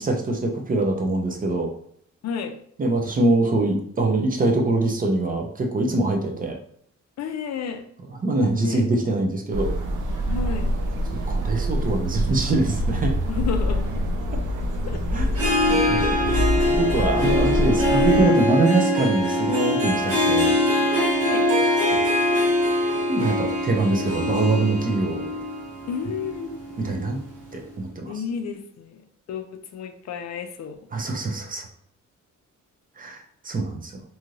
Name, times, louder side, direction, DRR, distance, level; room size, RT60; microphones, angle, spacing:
voice 1, 0.0-1.7 2.8-6.6 8.2-9.7 11.1-13.2 15.1-15.3 15.6-16.4 16.8-20.6 21.9-22.0 23.0-25.4 26.8-27.2 27.5-28.1 30.9-31.7 33.0-34.0, right 2 dB, 30° right, 2 dB, 0.5 m, -24 dB
voice 2, 2.2-2.5 7.2-7.8 8.6-8.9 10.3-10.7 13.3-14.0 14.9-15.0 15.3-15.4 21.0-21.5 25.9-26.6 28.0-30.8, left 6 dB, 60° left, 6 dB, 0.4 m, -32 dB
sound 1, 9.5-18.2, equal, 85° right, 0.6 m, -25 dB
Harp, 15.3-27.2, left 1 dB, 50° right, 0.9 m, -23 dB
2.7 x 2.4 x 3.0 m, 0.66 s
cardioid pair, 135°, 30 cm